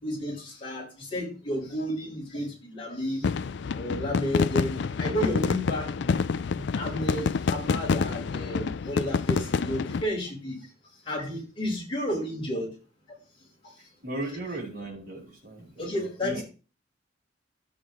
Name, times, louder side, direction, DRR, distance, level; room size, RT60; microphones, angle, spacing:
voice 1, 0.0-3.3 3.8-6.1 6.8-10.6 11.1-12.7 13.6-13.7 15.8-16.4, equal, 30° left, -5 dB, 5.2 m, -32 dB
sound 1, 3.2-10.0, left 5 dB, 65° left, 0.4 m, -28 dB
voice 2, 14.0-15.8 16.2-16.4, right 2 dB, 50° right, -2 dB, 4.7 m, -36 dB
14.0 x 8.7 x 3.1 m, 0.35 s
head